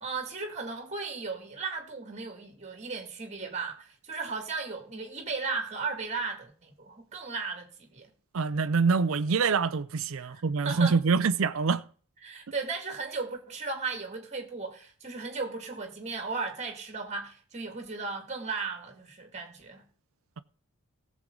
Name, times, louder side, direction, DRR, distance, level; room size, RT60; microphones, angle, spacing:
voice 1, 0.0-8.1 10.2-11.0 12.2-19.8, right 4 dB, 30° right, 2.2 m, -36 dB
voice 2, 8.3-11.8, right 5 dB, 65° right, 0.5 m, -25 dB
17.5 x 7.4 x 3.8 m
head